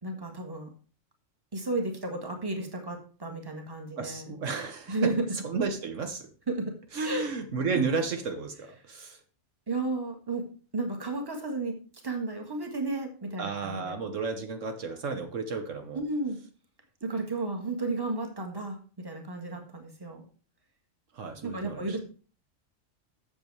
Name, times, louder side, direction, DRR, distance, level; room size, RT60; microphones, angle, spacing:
voice 1, 0.0-0.7 1.5-4.3 4.9-5.2 6.5-6.7 7.0-7.3 7.7-7.9 9.7-10.5 10.7-11.8 12.0-14.0 15.9-16.4 17.0-20.2 21.4-22.0, right 3 dB, 20° right, 3 dB, 1.5 m, -33 dB
voice 2, 4.0-5.1 5.4-6.3 6.9-9.2 13.4-16.0 21.1-22.0, right 4 dB, 70° right, 6 dB, 1.3 m, -33 dB
8.0 x 7.0 x 4.7 m, 0.39 s
omnidirectional pair, 1.4 m